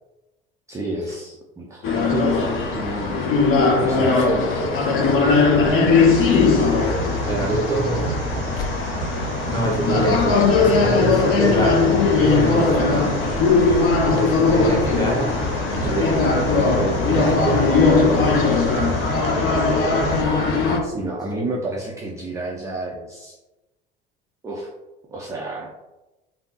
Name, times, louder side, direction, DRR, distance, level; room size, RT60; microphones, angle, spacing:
voice 1, 0.7-1.8 2.1-3.2 3.5-4.8 5.1-5.6 5.8-6.5 20.8-23.4 24.4-24.7 25.1-25.7, right 2 dB, 10° right, -3 dB, 0.4 m, -30 dB
sound 1, 1.8-20.8, left 4 dB, 45° left, 0.6 m, -19 dB
sound 2, 5.9-20.2, right 3 dB, 80° right, 0.7 m, -31 dB
voice 2, 7.3-8.1 9.5-13.3 14.0-15.4 15.8-18.4, right 1 dB, 15° left, -3 dB, 1.1 m, -25 dB
3.2 x 2.0 x 2.8 m, 1.0 s
hypercardioid pair, 65°, 29 cm